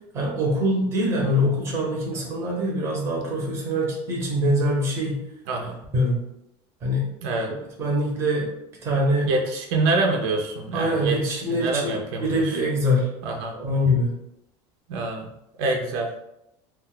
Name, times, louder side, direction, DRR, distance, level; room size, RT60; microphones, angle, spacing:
voice 1, 0.1-5.2 5.9-6.2 6.8-7.1 7.8-8.5 8.8-9.3 10.7-13.1 13.5-14.1, equal, 20° right, -2 dB, 0.7 m, -24 dB
voice 2, 9.3-12.6 13.2-13.5 14.9-15.3 15.6-16.1, right 3 dB, 75° right, 1 dB, 0.6 m, -26 dB
2.4 x 2.2 x 3.7 m, 0.83 s
cardioid pair, 170°, 13 cm